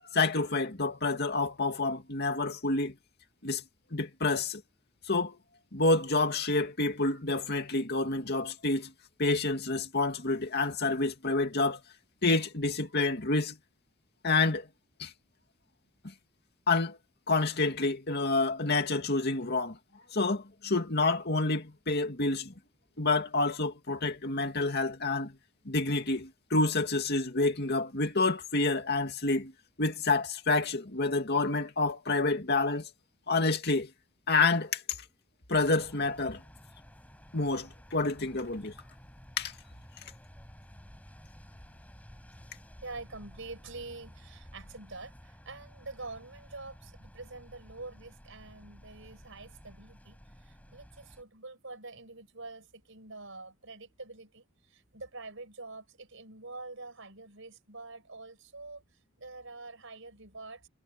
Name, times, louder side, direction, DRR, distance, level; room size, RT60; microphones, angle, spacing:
voice 1, 0.1-3.0 3.4-3.6 3.9-4.6 5.1-5.4 5.7-8.9 9.2-11.8 12.2-13.6 14.2-14.7 15.0-15.1 16.7-17.0 17.3-19.8 20.1-22.5 23.0-25.4 25.7-29.5 29.8-32.9 33.3-33.9 34.3-34.8 35.5-36.4 37.3-38.7 39.4-39.5, left 3 dB, 50° left, 2.4 m, -28 dB
sound 1, 35.5-51.2, equal, 5° left, 7.9 m, -53 dB
voice 2, 42.8-58.8 59.2-60.7, right 3 dB, 65° right, 6.7 m, -46 dB
head